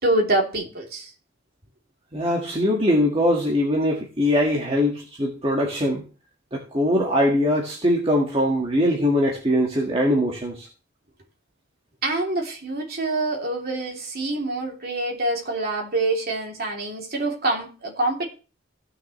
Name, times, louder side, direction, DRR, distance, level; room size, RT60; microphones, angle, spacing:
voice 1, 0.0-1.1 12.0-18.3, right 2 dB, 50° right, 0 dB, 3.0 m, -25 dB
voice 2, 2.1-6.0 6.5-10.7, left 1 dB, 30° right, -2 dB, 1.8 m, -22 dB
16.0 x 6.7 x 3.2 m, 0.36 s
head